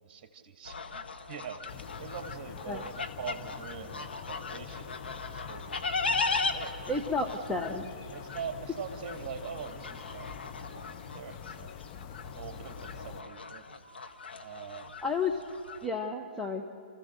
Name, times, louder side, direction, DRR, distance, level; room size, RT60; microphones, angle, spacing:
voice 1, 0.0-5.9 6.2-7.2 8.1-10.4 10.7-11.8 12.3-13.7 14.4-15.0, right 7 dB, 35° right, 6 dB, 1.9 m, -43 dB
sound 1, 0.6-15.9, left 4 dB, 70° left, 1.1 m, -38 dB
sound 2, 1.7-13.2, left 7 dB, 35° left, 0.7 m, -45 dB
voice 2, 6.9-7.9 15.0-15.4 15.8-16.6, left 3 dB, 5° left, 0 dB, 0.8 m, -31 dB
29.0 x 15.0 x 6.5 m, 2.5 s
figure-of-eight pair, 125°, 6 cm